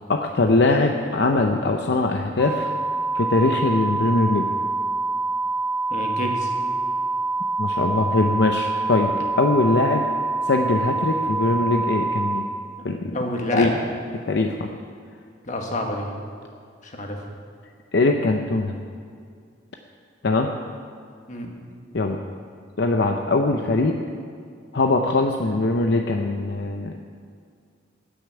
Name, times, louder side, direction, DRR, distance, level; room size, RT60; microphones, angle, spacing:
voice 1, 0.1-2.7 3.1-4.5 7.6-10.0 10.5-12.5 12.8-13.2 13.5-13.7 14.2-14.7 17.9-18.8 20.2-20.5 21.9-22.2 22.8-24.0 24.7-27.0, left 2 dB, 65° left, 3 dB, 0.7 m, -21 dB
sound 1, 2.4-12.4, right 3 dB, ahead, 2.3 m, -26 dB
voice 2, 5.9-6.5 13.1-13.7 15.4-16.1 16.8-17.2 21.3-21.5, left 1 dB, 40° left, 1 dB, 1.7 m, -27 dB
10.5 x 9.4 x 7.8 m, 2.2 s
head